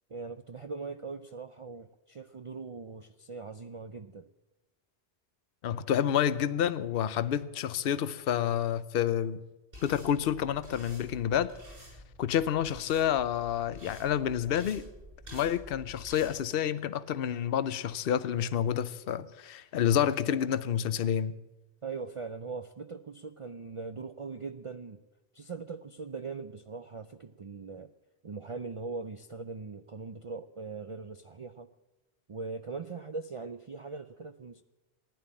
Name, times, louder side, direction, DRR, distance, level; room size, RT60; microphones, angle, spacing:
voice 1, 0.1-4.3 21.8-25.0 25.3-27.9 28.2-31.7 32.3-34.6, right 4 dB, 40° right, 0.5 m, -41 dB
voice 2, 5.6-9.4 9.8-11.5 12.2-14.9 15.3-21.3, left 9 dB, 65° left, 0.9 m, -29 dB
sound 1, 9.7-16.3, equal, 60° right, 7.9 m, -49 dB
15.0 x 11.0 x 8.6 m
omnidirectional pair, 1.1 m